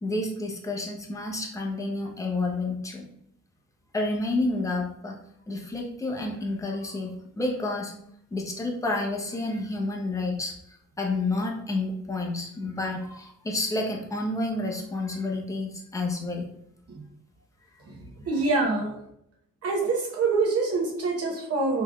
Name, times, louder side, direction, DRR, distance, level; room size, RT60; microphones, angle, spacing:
voice 1, 0.0-3.1 3.9-5.1 5.5-7.9 8.3-16.5 18.3-18.4, left 2 dB, 10° left, 0 dB, 0.6 m, -30 dB
voice 2, 18.3-19.0 19.6-21.8, right 3 dB, 55° right, 0 dB, 0.9 m, -25 dB
3.6 x 3.1 x 2.3 m, 0.73 s
cardioid pair, 115°, 29 cm